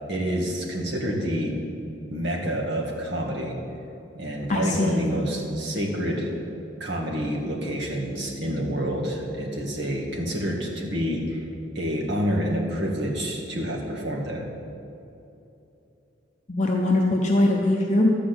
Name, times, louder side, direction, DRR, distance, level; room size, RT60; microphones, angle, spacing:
voice 1, 0.1-1.5 2.1-3.5 4.2-6.3 6.8-11.4 11.8-14.4, equal, 60° right, -2 dB, 1.8 m, -28 dB
voice 2, 4.5-5.1 16.5-18.1, left 1 dB, 40° left, 0 dB, 0.7 m, -21 dB
12.0 x 5.0 x 7.9 m, 2.8 s
head